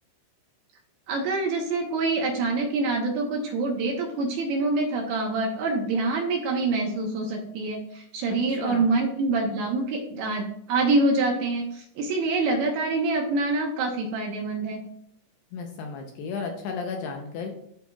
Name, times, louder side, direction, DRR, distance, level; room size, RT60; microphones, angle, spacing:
voice 1, 1.1-14.8, right 3 dB, 75° right, 1 dB, 2.5 m, -26 dB
voice 2, 15.5-17.5, left 5 dB, 80° left, 3 dB, 2.5 m, -33 dB
13.0 x 4.4 x 2.3 m, 0.70 s
omnidirectional pair, 5.2 m